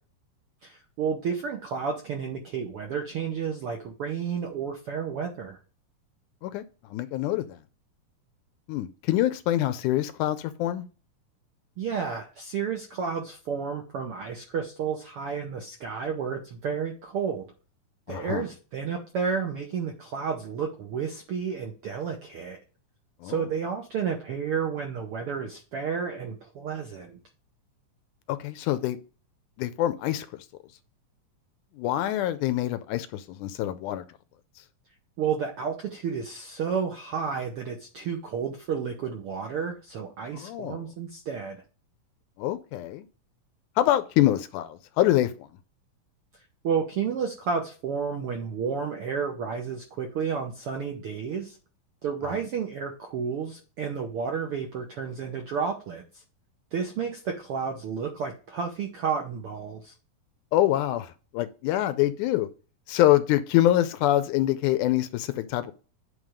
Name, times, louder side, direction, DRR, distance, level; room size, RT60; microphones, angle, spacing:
voice 1, 0.6-5.6 11.8-17.5 18.1-22.6 23.2-27.2 35.2-41.6 46.6-51.6 52.0-56.0 56.7-59.9, right 6 dB, 80° right, 1.2 m, -31 dB
voice 2, 6.9-7.6 8.7-10.8 18.1-18.5 23.2-23.5 28.3-29.0 29.6-30.5 31.8-34.0 40.3-40.9 42.4-43.1 43.8-45.5 52.2-52.4 60.5-62.5 62.9-65.7, left 13 dB, 80° left, 1.8 m, -25 dB
9.2 x 3.4 x 5.0 m
omnidirectional pair, 4.0 m